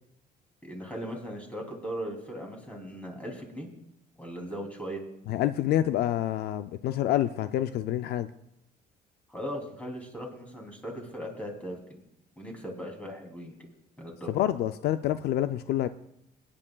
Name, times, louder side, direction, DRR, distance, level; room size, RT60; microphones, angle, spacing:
voice 1, 0.6-3.7 4.2-5.0 9.3-12.0 12.4-13.5 14.0-14.4, equal, 10° left, 1 dB, 2.8 m, -38 dB
voice 2, 5.3-8.3 14.3-15.9, left 12 dB, 70° left, 12 dB, 0.4 m, -27 dB
23.5 x 9.9 x 2.3 m, 0.78 s
cardioid pair, 110°, 17 cm